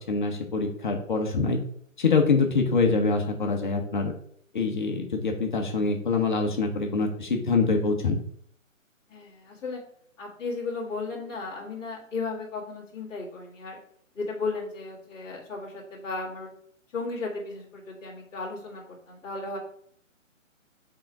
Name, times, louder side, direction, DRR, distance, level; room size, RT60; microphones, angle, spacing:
voice 1, 0.1-1.6 2.0-4.1 4.5-8.2, left 4 dB, 35° left, 3 dB, 0.9 m, -25 dB
voice 2, 9.1-9.8 10.2-13.8 14.1-16.5 16.9-19.6, left 3 dB, 10° left, -9 dB, 1.6 m, -35 dB
5.9 x 3.8 x 4.6 m, 0.62 s
figure-of-eight pair, 145°, 40 cm